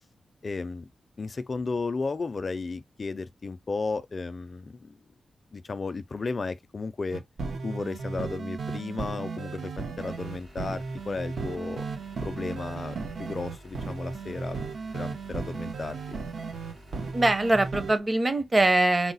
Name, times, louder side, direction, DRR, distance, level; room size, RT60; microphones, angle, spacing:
voice 1, 0.4-0.9 1.2-5.0 5.5-7.2 7.6-9.7 10.0-11.8 12.2-14.6 14.9-16.2, left 4 dB, 45° left, 0.4 m, -34 dB
sound 1, 7.1-18.0, right 4 dB, 80° right, 0.9 m, -35 dB
sound 2, 10.0-17.7, equal, 60° right, 2.8 m, -50 dB
voice 2, 17.1-19.1, right 2 dB, 30° right, 0.7 m, -22 dB
4.7 x 2.0 x 4.0 m
wide cardioid pair, 95°, 0 cm